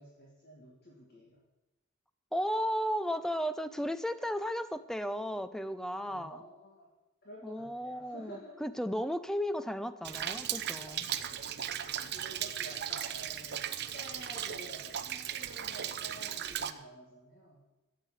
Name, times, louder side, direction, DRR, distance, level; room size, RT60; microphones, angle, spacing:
voice 1, 0.0-1.4 6.0-6.9 7.2-8.6 10.9-11.7 12.1-17.6, equal, 50° left, -3 dB, 2.3 m, -50 dB
voice 2, 2.3-6.4 7.4-11.1 12.0-12.1, equal, ahead, 12 dB, 0.5 m, -34 dB
Rain, 10.0-16.7, right 10 dB, 50° right, 0.7 m, -37 dB
13.0 x 7.6 x 9.1 m, 1.0 s
head